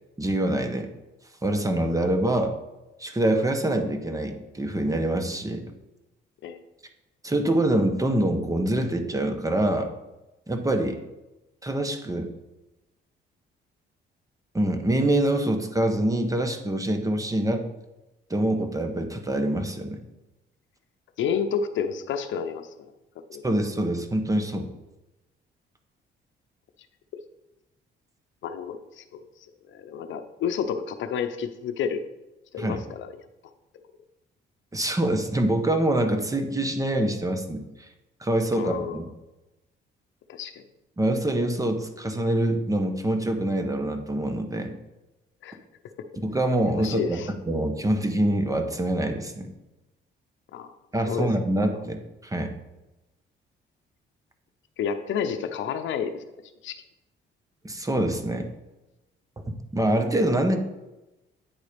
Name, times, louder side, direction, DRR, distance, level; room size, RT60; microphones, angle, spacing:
voice 1, 0.2-0.9 1.4-2.5 3.0-5.7 7.2-9.9 10.5-11.0 11.6-12.3 14.5-17.6 18.3-20.0 23.4-24.7 32.6-32.8 34.7-37.6 38.2-39.1 41.0-44.7 46.2-49.5 50.9-52.6 57.6-58.5 59.5-60.6, right 1 dB, 15° right, 6 dB, 1.0 m, -25 dB
voice 2, 21.2-22.7 23.3-23.4 28.4-29.2 29.7-32.1 32.5-33.1 38.5-39.0 40.3-40.6 45.4-45.6 46.7-47.3 50.5-50.7 51.1-51.3 54.8-56.2 56.6-56.8, left 7 dB, 75° left, 8 dB, 0.7 m, -30 dB
9.0 x 4.0 x 5.0 m, 1.0 s
cardioid pair, 90°, 20 cm